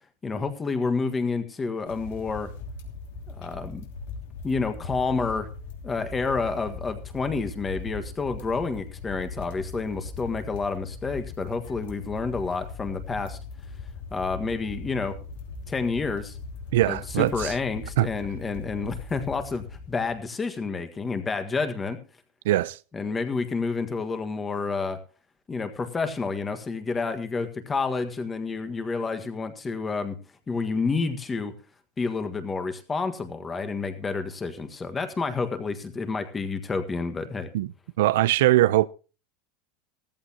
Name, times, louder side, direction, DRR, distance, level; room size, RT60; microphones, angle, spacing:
voice 1, 0.2-2.5 3.3-3.8 4.4-5.5 5.8-13.4 14.1-15.2 15.7-16.4 16.9-22.0 22.9-25.0 25.5-30.2 30.5-31.5 32.0-37.5, left 4 dB, 15° left, 1.5 m, -29 dB
sound 1, 1.9-20.2, left 4 dB, 75° left, 3.1 m, -40 dB
voice 2, 16.7-17.5 18.0-18.1 22.4-22.8 37.5-37.7 38.0-38.9, right 15 dB, 80° right, 0.6 m, -21 dB
15.5 x 14.5 x 2.9 m
supercardioid pair, 165°, 0 cm